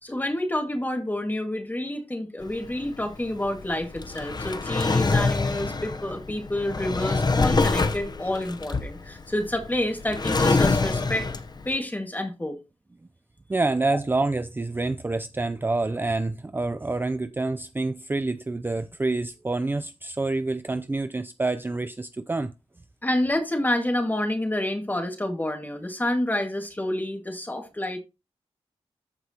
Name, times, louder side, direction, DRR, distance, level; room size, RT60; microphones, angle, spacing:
voice 1, 0.0-11.3 11.7-12.6 13.9-14.0 23.0-28.0, left 1 dB, 15° left, 2.0 m, -28 dB
Drawer open or close, 2.4-11.7, left 3 dB, 40° left, 0.8 m, -25 dB
voice 2, 13.5-22.5, right 3 dB, 20° right, 0.5 m, -27 dB
14.0 x 4.8 x 2.9 m
wide cardioid pair, 110°, 11 cm